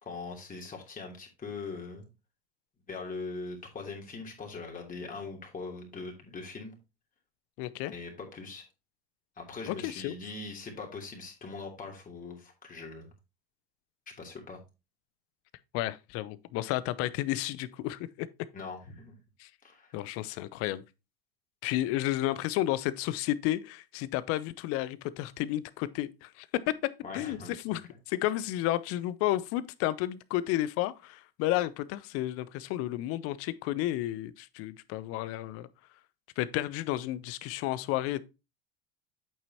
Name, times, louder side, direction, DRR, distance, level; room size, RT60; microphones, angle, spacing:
voice 1, 0.0-2.1 2.9-6.7 7.9-8.6 9.4-13.1 14.2-14.6 18.5-19.2 19.6-20.0 27.0-27.5, left 4 dB, 25° left, 3.0 m, -41 dB
voice 2, 7.6-7.9 9.7-10.1 15.7-18.3 19.4-19.5 19.9-20.8 21.6-26.7 27.1-27.4 27.6-35.7 36.4-38.2, left 15 dB, 50° left, 0.7 m, -32 dB
8.7 x 6.8 x 2.9 m
hypercardioid pair, 80°, 30 cm